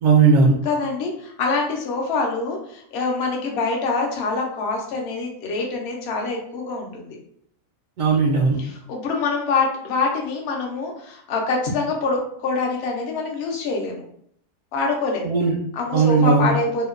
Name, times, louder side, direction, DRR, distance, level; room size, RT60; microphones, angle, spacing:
voice 1, 0.0-0.5 8.0-8.6 15.2-15.5 15.9-16.5, right 4 dB, 70° right, -2 dB, 0.9 m, -16 dB
voice 2, 0.6-7.2 8.6-14.0 14.7-15.3 15.7-16.9, left 3 dB, 60° left, 0 dB, 0.7 m, -25 dB
2.8 x 2.1 x 2.4 m, 0.66 s
omnidirectional pair, 1.6 m